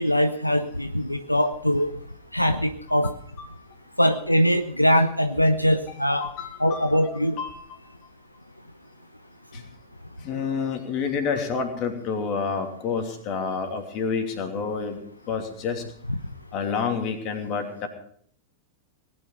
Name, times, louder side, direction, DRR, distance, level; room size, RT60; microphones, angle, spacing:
voice 1, 0.0-1.9 2.3-3.1 4.0-6.3 6.6-7.4 16.1-16.2, equal, 90° left, 9 dB, 0.7 m, -22 dB
voice 2, 6.2-7.5 9.5-9.6 10.2-15.0 15.3-15.8 16.5-17.9, left 5 dB, 40° left, 5 dB, 2.8 m, -29 dB
19.0 x 10.0 x 5.5 m, 0.62 s
figure-of-eight pair, 90°, 0 cm